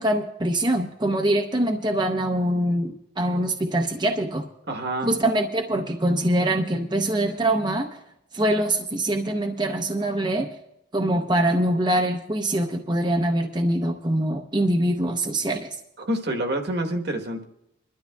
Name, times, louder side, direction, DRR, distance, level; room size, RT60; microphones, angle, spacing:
voice 1, 0.0-4.5 5.0-7.9 8.3-10.5 10.9-15.7, right 1 dB, 20° right, 3 dB, 0.7 m, -24 dB
voice 2, 4.7-5.1 16.0-17.4, right 1 dB, 55° right, 3 dB, 1.2 m, -27 dB
25.5 x 12.5 x 2.3 m, 0.84 s
head